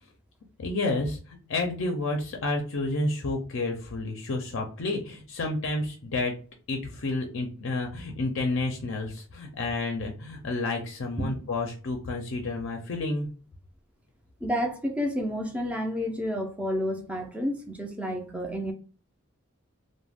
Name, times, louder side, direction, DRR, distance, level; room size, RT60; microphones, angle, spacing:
voice 1, 0.6-6.3 6.7-13.3, left 2 dB, 60° left, 0.5 m, -30 dB
voice 2, 14.4-18.7, equal, 5° right, 0.4 m, -30 dB
2.3 x 2.1 x 3.3 m
head